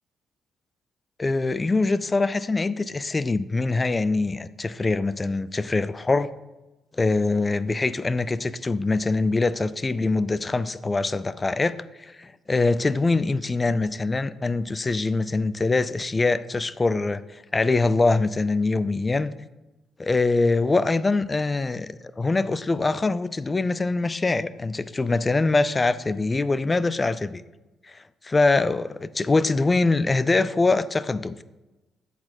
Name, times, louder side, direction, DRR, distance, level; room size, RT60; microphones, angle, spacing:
voice 1, 1.2-6.3 7.0-19.3 20.0-27.4 27.9-31.4, left 3 dB, 25° left, 15 dB, 0.3 m, -23 dB
7.7 x 4.1 x 4.3 m, 1.1 s
cardioid pair, 90°, 0 cm